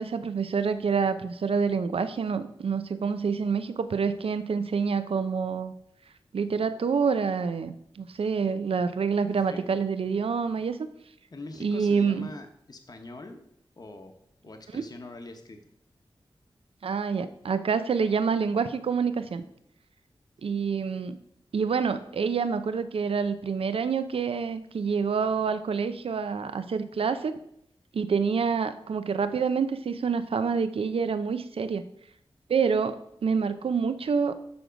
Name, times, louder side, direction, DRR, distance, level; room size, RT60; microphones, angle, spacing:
voice 1, 0.0-5.7 6.3-10.8 11.6-12.3 14.7-14.8 16.8-19.4 20.4-21.2 21.5-27.4 27.9-31.8 32.5-34.3, right 5 dB, 80° right, 11 dB, 0.5 m, -27 dB
voice 2, 11.3-13.4 13.8-14.2 14.4-15.6, left 2 dB, 45° left, 5 dB, 0.9 m, -43 dB
6.9 x 6.1 x 5.0 m, 0.73 s
wide cardioid pair, 85°, 10 cm